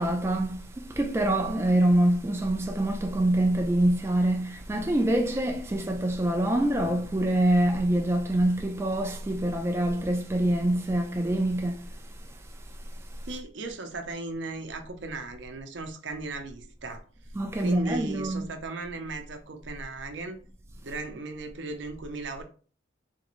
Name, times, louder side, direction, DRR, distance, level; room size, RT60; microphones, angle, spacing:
voice 1, 0.0-11.8 17.4-18.5, right 1 dB, 15° right, 0.3 m, -25 dB
voice 2, 13.3-17.0 17.6-20.4 20.8-22.4, right 3 dB, 70° right, 0.6 m, -37 dB
3.6 x 3.0 x 2.5 m
head